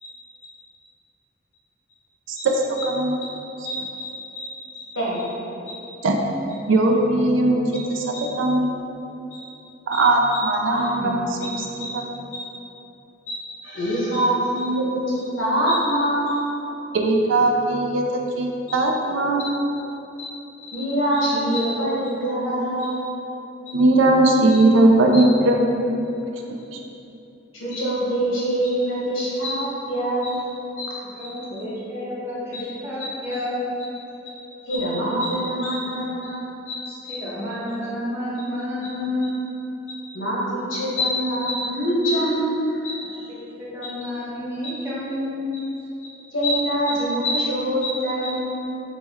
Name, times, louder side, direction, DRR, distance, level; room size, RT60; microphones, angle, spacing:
voice 1, 2.3-3.2 6.0-6.2 6.7-8.0 8.4-8.7 9.9-11.7 11.9-12.1 16.9-19.5 23.7-26.1, right 2 dB, 75° right, 1 dB, 0.4 m, -19 dB
voice 2, 3.6-4.5 4.7-5.3 5.7-5.8 8.1-8.2 9.3-9.4 9.9-10.0 10.3-10.4 10.7-11.5 11.8-11.9 12.3-12.4 13.3-16.4 19.4-19.5 20.2-20.3 20.6-23.0 23.7-23.8 24.5-24.6 25.1-25.2 27.5-30.5 30.8-31.3 32.5-32.6 33.0-33.4 34.2-34.4 34.7-37.2 39.9-43.2 44.6-44.7 46.0-48.5, equal, 80° left, -6 dB, 1.0 m, -25 dB
voice 3, 31.2-33.7 36.9-39.2 43.3-45.4, left 1 dB, 15° right, -9 dB, 0.8 m, -30 dB
4.1 x 2.2 x 3.5 m, 2.9 s
head